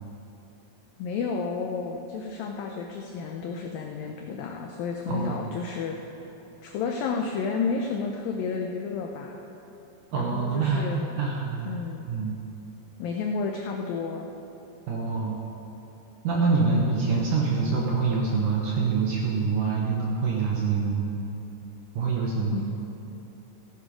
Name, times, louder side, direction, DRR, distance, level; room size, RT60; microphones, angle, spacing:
voice 1, 1.0-6.2 6.6-9.4 10.1-11.2 11.7-12.1 13.0-14.3 22.5-22.6, left 5 dB, 85° left, 2 dB, 2.0 m, -31 dB
voice 2, 5.1-5.5 10.1-10.9 11.2-11.8 12.1-12.4 14.9-15.4 16.2-21.1 21.9-22.6, right 4 dB, 70° right, -2 dB, 2.0 m, -25 dB
15.0 x 9.9 x 5.0 m, 3.0 s
omnidirectional pair, 4.9 m